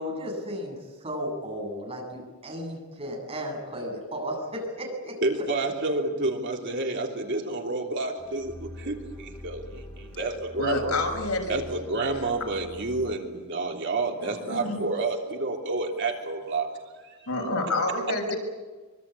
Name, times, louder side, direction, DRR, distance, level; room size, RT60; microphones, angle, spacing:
voice 1, 0.0-5.2, equal, 25° right, 0 dB, 8.0 m, -34 dB
voice 2, 5.2-10.9 11.5-16.7 17.0-17.3, right 2 dB, 55° right, 1 dB, 3.4 m, -29 dB
sound 1, 8.2-13.2, left 1 dB, 15° left, 1.9 m, -43 dB
voice 3, 10.6-11.5 14.2-14.8 17.3-18.4, left 2 dB, 85° left, 2 dB, 6.5 m, -28 dB
24.5 x 24.5 x 8.6 m, 1.3 s
head